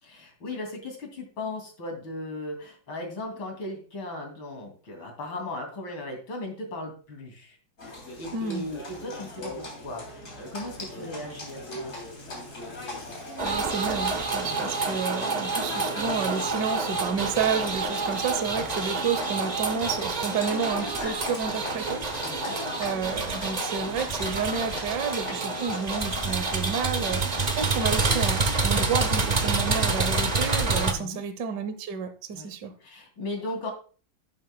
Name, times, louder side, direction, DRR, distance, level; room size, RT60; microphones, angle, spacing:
voice 1, 0.0-7.6 8.2-12.0 14.4-14.7 22.2-22.6 30.9-31.2 32.3-32.5 32.8-33.7, left 2 dB, 65° left, 2 dB, 3.6 m, -37 dB
Livestock farm animals working animals, 7.8-27.7, left 2 dB, 35° left, 3.5 m, -40 dB
voice 2, 8.3-8.6 13.4-22.0 22.8-32.7, right 6 dB, 60° right, 9 dB, 1.5 m, -30 dB
sound 1, 13.4-30.9, right 3 dB, 80° right, 0.3 m, -28 dB
11.0 x 9.4 x 2.3 m, 0.39 s
omnidirectional pair, 2.3 m